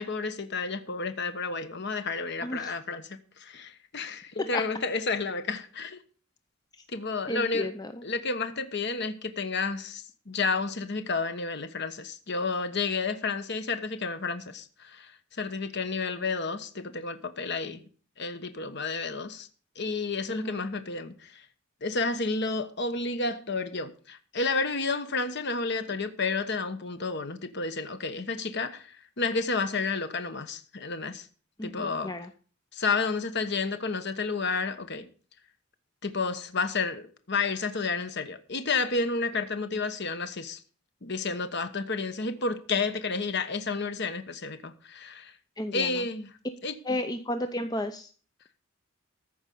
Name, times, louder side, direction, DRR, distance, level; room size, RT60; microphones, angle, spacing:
voice 1, 0.0-6.0 6.9-7.7 8.0-17.8 18.2-19.5 19.7-21.4 21.8-31.3 31.6-32.1 32.7-35.1 36.0-40.6 41.0-45.3 45.7-46.3 46.6-47.0, left 4 dB, 55° left, 1.3 m, -31 dB
voice 2, 2.4-2.7 4.5-4.6 7.3-8.0 20.3-20.7 31.6-32.3 45.6-46.0 46.8-48.1, left 1 dB, 20° left, 0.7 m, -33 dB
14.5 x 5.3 x 8.6 m
head